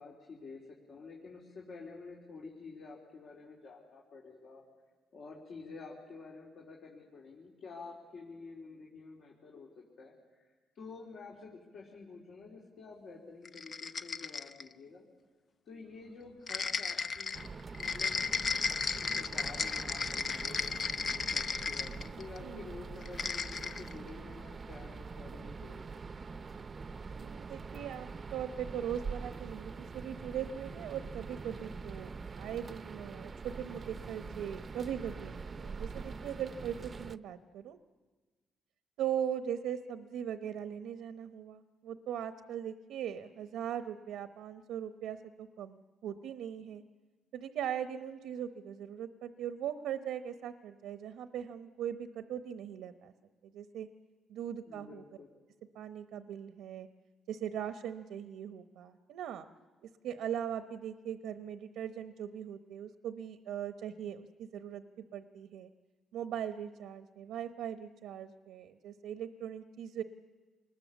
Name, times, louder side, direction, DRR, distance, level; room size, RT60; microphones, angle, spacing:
voice 1, 0.0-4.6 5.1-15.0 15.7-17.4 17.7-18.2 18.9-25.8 26.1-26.2 54.7-55.3, left 4 dB, 65° left, -3 dB, 3.7 m, -50 dB
sound 1, 13.4-14.7 16.5-22.4 23.0-23.9, left 5 dB, 45° left, 0.7 m, -35 dB
sound 2, 17.3-37.2, right 4 dB, 40° right, 0.6 m, -44 dB
voice 2, 27.1-37.8 39.0-46.8 47.3-53.1 53.4-53.9 54.3-55.0 55.7-56.9 57.3-59.5 60.0-65.7 66.1-70.0, right 9 dB, 85° right, 10 dB, 0.9 m, -40 dB
26.0 x 20.5 x 7.2 m, 1.4 s
cardioid pair, 90°, 0 cm